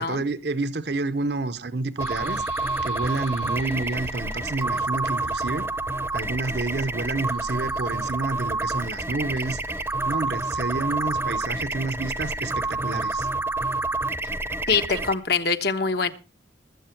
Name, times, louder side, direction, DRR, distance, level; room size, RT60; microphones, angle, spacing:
voice 1, 0.0-2.4 2.8-5.7 6.1-13.3 14.9-15.0, right 3 dB, 60° right, 0.8 m, -29 dB
sound 1, 2.0-8.1, left 4 dB, 90° left, 5.4 m, -47 dB
sound 2, 2.0-15.1, right 2 dB, 15° right, 0.7 m, -28 dB
voice 2, 14.7-16.1, left 5 dB, 60° left, 1.2 m, -24 dB
20.0 x 7.9 x 4.5 m
head